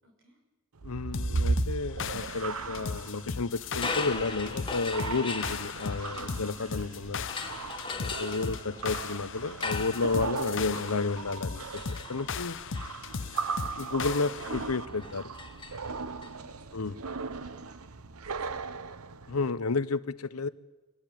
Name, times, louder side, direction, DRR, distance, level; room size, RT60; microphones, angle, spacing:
voice 1, 0.0-0.4 15.9-18.9, right 1 dB, 60° right, 5.8 m, -60 dB
voice 2, 0.8-7.2 8.0-11.8 12.1-12.6 13.8-15.3 16.7-16.9 19.3-20.5, left 4 dB, 90° left, 0.9 m, -31 dB
sound 1, 0.8-19.5, right 4 dB, 85° right, 0.9 m, -37 dB
sound 2, 1.1-14.7, left 5 dB, 60° left, 0.8 m, -37 dB
sound 3, 3.7-6.8 7.3-16.3, left 4 dB, 25° left, 1.5 m, -40 dB
23.0 x 17.0 x 9.3 m
head